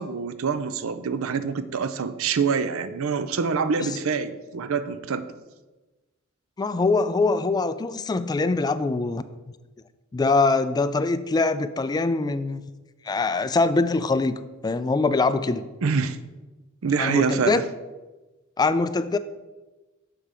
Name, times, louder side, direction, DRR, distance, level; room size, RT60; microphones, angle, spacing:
voice 1, 0.0-5.3 15.8-16.2 16.8-17.6, right 5 dB, 75° right, 12 dB, 0.5 m, -25 dB
voice 2, 6.6-9.2 10.1-12.6 13.0-15.7 17.0-17.6 18.6-19.2, left 3 dB, 20° left, 13 dB, 0.3 m, -23 dB
6.7 x 5.8 x 4.8 m, 1.2 s
head